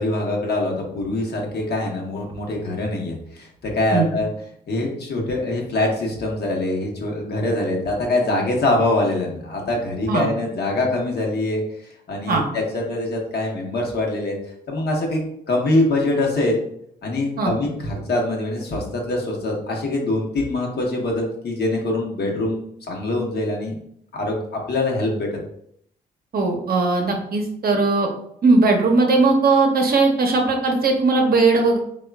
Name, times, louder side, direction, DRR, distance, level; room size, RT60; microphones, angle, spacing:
voice 1, 0.0-4.3 4.7-11.6 12.1-14.3 14.7-15.2 15.5-16.6 17.0-23.7 24.1-25.4, left 2 dB, 55° left, 0 dB, 0.9 m, -24 dB
voice 2, 26.3-28.1 28.4-31.8, right 3 dB, 50° right, 2 dB, 0.7 m, -18 dB
3.6 x 2.3 x 2.2 m, 0.72 s
hypercardioid pair, 45°, 20 cm